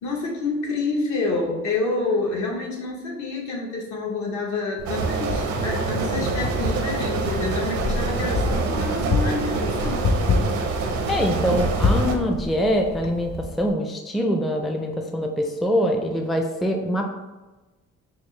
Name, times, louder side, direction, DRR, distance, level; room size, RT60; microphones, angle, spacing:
voice 1, 0.0-10.1, left 3 dB, 70° left, -2 dB, 1.1 m, -28 dB
Wind, 4.8-13.7, left 3 dB, 50° left, 0.6 m, -28 dB
sound 1, 4.8-12.1, right 4 dB, 75° right, 0.6 m, -26 dB
voice 2, 11.1-17.1, equal, ahead, 3 dB, 0.4 m, -24 dB
4.9 x 2.0 x 3.1 m, 1.1 s
cardioid pair, 90°, 30 cm